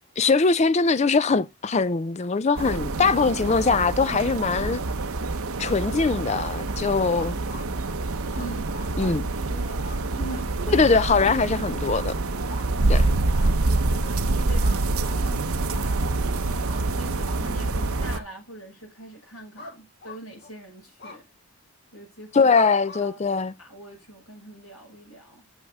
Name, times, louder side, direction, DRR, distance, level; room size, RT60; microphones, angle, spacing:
voice 1, 0.2-4.8 5.6-7.4 9.0-9.2 10.7-12.1 12.9-13.0 22.3-23.5, left 4 dB, 30° left, 0.4 m, -21 dB
sound 1, 2.6-18.2, right 2 dB, 75° right, 0.9 m, -26 dB
sound 2, 5.7-6.5 7.1-7.7 8.3-8.9 9.8-10.0 10.3-10.5 11.2-11.3 11.9-12.0 12.5-12.7 13.3-13.5 14.6-15.2 15.7-15.9 16.7-16.8 17.2-17.4 18.1-18.3 19.6-19.8 20.0-20.5 21.0-21.2 22.5-23.0, left 3 dB, 45° left, 2.6 m, -42 dB
voice 2, 8.3-9.2 9.5-9.9 10.2-10.5 12.9-13.3 13.8-16.0 16.8-21.3 21.9-22.6 23.0-23.2 23.6-25.4, right 1 dB, 75° left, 6.0 m, -42 dB
8.5 x 6.6 x 3.6 m
head